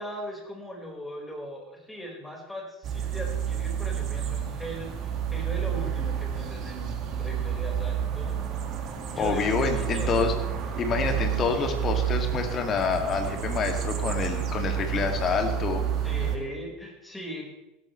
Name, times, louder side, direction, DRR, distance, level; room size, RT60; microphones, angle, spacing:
voice 1, 0.0-8.4 9.1-10.1 16.0-17.4, equal, 5° left, -1 dB, 5.2 m, -39 dB
sound 1, 2.8-16.4, right 8 dB, 45° right, 2.2 m, -30 dB
voice 2, 9.2-10.3 10.8-15.8, left 5 dB, 35° left, 4 dB, 2.5 m, -27 dB
17.0 x 14.0 x 3.4 m, 0.93 s
hypercardioid pair, 80°, 0 cm